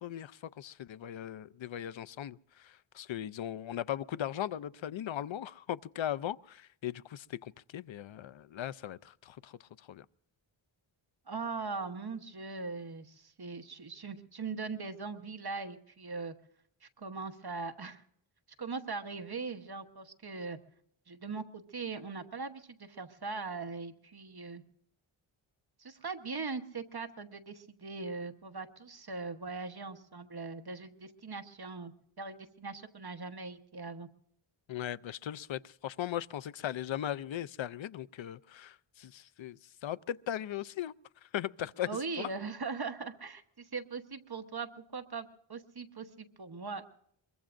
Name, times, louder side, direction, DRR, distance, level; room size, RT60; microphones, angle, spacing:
voice 1, 0.0-9.6 9.9-10.1 34.7-40.9 41.2-41.9 42.2-42.3, left 11 dB, 65° left, 0.5 m, -38 dB
voice 2, 11.3-16.3 16.8-18.0 18.6-20.6 21.1-24.6 25.8-31.9 32.2-34.1 41.9-46.9, right 4 dB, 50° right, 1.2 m, -40 dB
23.5 x 22.5 x 2.6 m
wide cardioid pair, 90°, 49 cm